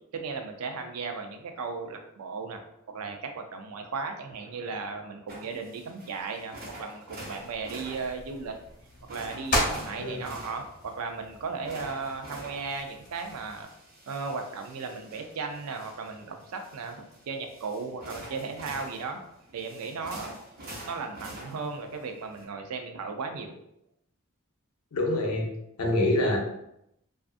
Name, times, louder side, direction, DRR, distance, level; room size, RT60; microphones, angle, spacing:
voice 1, 0.1-2.6 2.9-8.6 9.1-13.7 14.1-19.2 19.5-20.4 20.8-23.6, right 4 dB, 85° right, 5 dB, 0.4 m, -36 dB
sound 1, 5.3-22.4, right 1 dB, 45° right, 0.7 m, -47 dB
sound 2, 7.4-13.6, left 1 dB, 40° left, 0.7 m, -36 dB
voice 2, 24.9-25.5 25.8-26.4, left 1 dB, 90° left, 1 dB, 0.6 m, -25 dB
2.4 x 2.4 x 2.4 m, 0.78 s
head